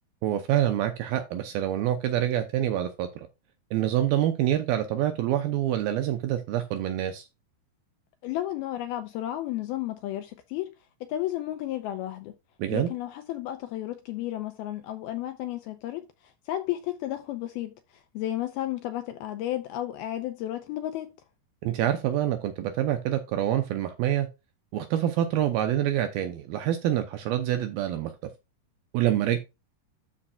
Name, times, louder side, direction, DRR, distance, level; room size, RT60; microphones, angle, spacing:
voice 1, 0.2-3.3 3.7-7.3 12.6-12.9 21.6-24.3 24.7-28.1 28.9-29.4, right 12 dB, 80° right, 2.2 m, -26 dB
voice 2, 8.2-10.7 11.0-12.3 12.7-21.1, left 13 dB, 85° left, 2.2 m, -33 dB
13.0 x 5.3 x 2.4 m
omnidirectional pair, 5.0 m